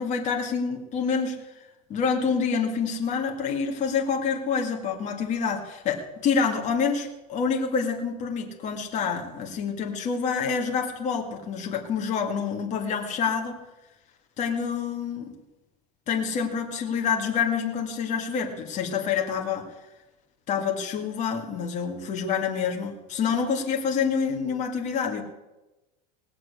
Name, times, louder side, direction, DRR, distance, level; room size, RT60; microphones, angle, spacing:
voice 1, 0.0-13.6 14.4-15.3 16.1-19.7 20.5-25.2, left 6 dB, 35° left, 2 dB, 2.0 m, -27 dB
18.5 x 7.6 x 8.2 m, 1.0 s
supercardioid pair, 145°, 21 cm